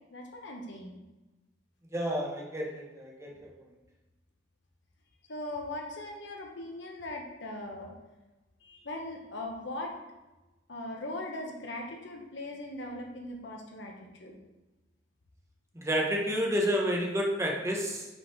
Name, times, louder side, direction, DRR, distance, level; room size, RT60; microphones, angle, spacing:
voice 1, 0.1-1.0 5.3-7.9 8.6-9.9 10.7-14.4, left 1 dB, 70° left, 1 dB, 1.1 m, -40 dB
voice 2, 1.9-3.5 15.8-18.1, equal, 15° right, -1 dB, 1.0 m, -30 dB
5.6 x 4.2 x 4.6 m, 1.1 s
head